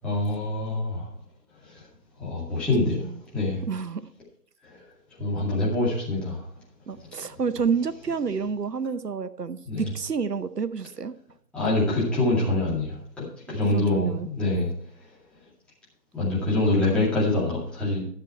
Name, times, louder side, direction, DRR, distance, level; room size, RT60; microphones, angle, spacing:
voice 1, 0.0-1.1 1.6-1.8 2.2-3.6 4.6-4.8 5.2-6.5 7.0-7.1 9.7-9.9 11.5-14.7 16.1-18.0, left 2 dB, ahead, -9 dB, 2.3 m, -25 dB
voice 2, 2.8-3.1 3.6-4.1 6.9-11.1 13.5-14.3, right 5 dB, 85° right, 15 dB, 0.8 m, -29 dB
13.5 x 7.2 x 4.4 m, 0.63 s
figure-of-eight pair, 150°, 47 cm